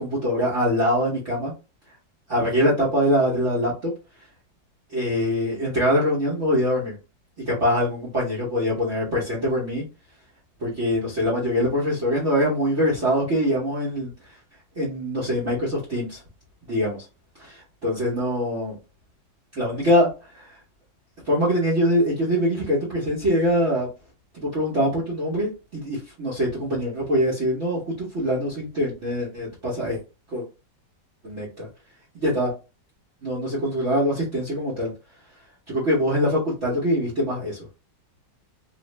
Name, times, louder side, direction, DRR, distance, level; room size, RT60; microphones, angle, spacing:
voice 1, 0.0-1.5 2.3-3.9 4.9-6.9 7.5-9.8 10.6-14.1 14.8-16.2 16.6-17.0 17.8-18.8 19.5-20.6 21.3-23.9 24.4-30.0 30.3-30.4 31.2-31.7 32.1-32.5 33.2-34.9 35.7-37.6, equal, 45° right, -7 dB, 1.1 m, -23 dB
3.1 x 2.5 x 3.1 m, 0.30 s
omnidirectional pair, 2.0 m